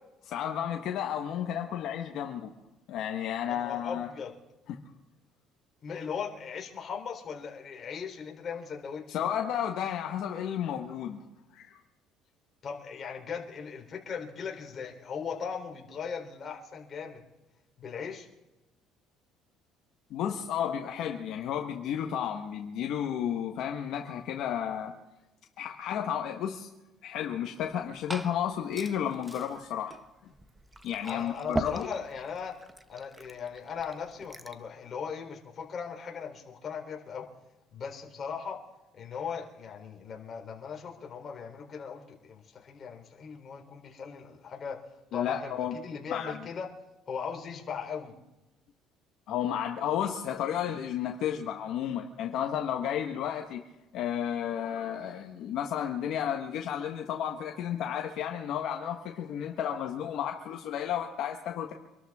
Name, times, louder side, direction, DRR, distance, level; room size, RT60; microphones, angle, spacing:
voice 1, 0.3-2.5 2.9-4.1 5.9-6.0 9.1-11.2 11.5-11.8 20.1-24.9 25.6-26.7 27.0-30.0 30.8-31.9 45.1-45.8 46.1-46.4 49.3-53.6 53.9-61.7, left 9 dB, 65° left, 3 dB, 1.4 m, -32 dB
voice 2, 3.5-4.3 5.8-9.2 12.6-17.2 17.8-18.3 31.0-32.6 32.9-37.3 37.7-38.6 38.9-44.8 45.1-46.7 47.1-48.1, left 6 dB, 40° left, 0 dB, 3.5 m, -38 dB
Glass / Fill (with liquid), 27.6-34.7, right 1 dB, 10° right, 1.1 m, -41 dB
26.5 x 12.5 x 3.6 m, 1.0 s
cardioid pair, 100°, 0 cm